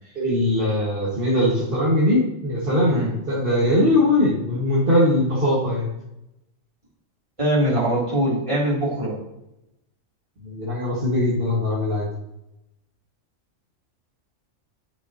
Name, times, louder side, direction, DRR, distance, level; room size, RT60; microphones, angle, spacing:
voice 1, 0.2-5.9 10.4-12.1, left 1 dB, 45° right, -5 dB, 1.8 m, -21 dB
voice 2, 7.4-9.2, right 1 dB, 25° right, -6 dB, 2.8 m, -22 dB
9.9 x 6.8 x 2.8 m, 0.89 s
omnidirectional pair, 1.4 m